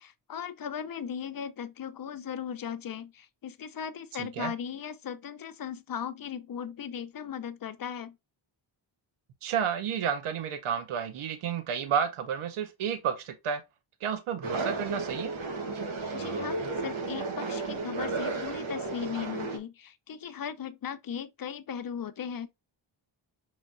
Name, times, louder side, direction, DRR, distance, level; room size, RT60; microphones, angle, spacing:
voice 1, 0.0-8.2 16.1-22.5, left 8 dB, 45° left, 0.6 m, -37 dB
voice 2, 9.4-13.6 14.0-15.3, right 8 dB, 90° right, 0.7 m, -31 dB
sound 1, 14.4-19.6, right 3 dB, 75° right, 1.1 m, -33 dB
5.6 x 3.0 x 2.5 m
cardioid pair, 75°, 48 cm